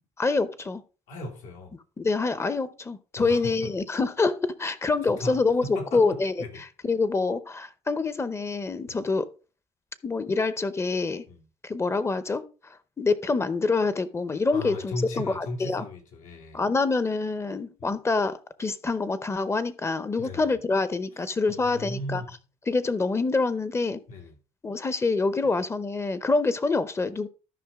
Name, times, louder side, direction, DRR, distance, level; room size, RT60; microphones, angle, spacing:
voice 1, 0.2-0.8 2.0-6.3 6.8-9.3 10.0-11.2 11.6-12.4 13.0-15.8 16.5-22.2 22.7-24.0 24.6-27.3, left 3 dB, 20° left, 0.7 m, -26 dB
voice 2, 1.1-1.7 3.2-3.6 5.2-5.4 5.7-6.6 8.9-9.0 11.3-11.4 14.5-16.7 17.8-17.9 20.2-20.6 21.5-22.3 24.1-24.4, left 2 dB, 80° left, 2.3 m, -37 dB
12.5 x 5.4 x 3.5 m
cardioid pair, 115°, 13 cm